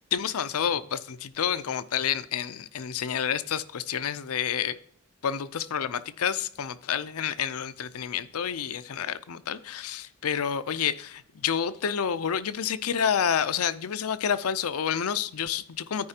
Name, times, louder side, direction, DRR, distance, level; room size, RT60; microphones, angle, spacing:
voice 1, 0.1-4.8 5.2-16.1, left 8 dB, 75° left, 0.5 m, -29 dB
13.0 x 4.8 x 2.8 m
head